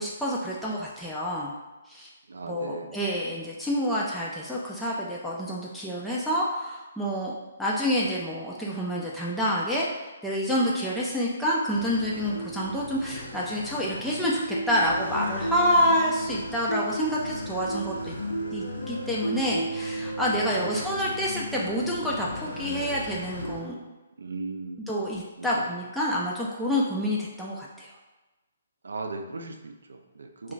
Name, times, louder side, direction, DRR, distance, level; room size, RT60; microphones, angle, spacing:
voice 1, 0.0-1.5 1.9-2.1 2.5-7.3 7.6-18.2 18.5-23.8 24.9-27.9, equal, ahead, -7 dB, 0.4 m, -28 dB
voice 2, 2.3-2.9 20.5-20.8 24.2-24.8 25.4-25.6 28.8-30.5, right 3 dB, 75° right, 5 dB, 0.4 m, -37 dB
sound 1, 11.7-23.6, right 1 dB, 80° left, 0.7 m, -34 dB
2.3 x 2.3 x 3.8 m, 1.1 s
figure-of-eight pair, 140°, 0 cm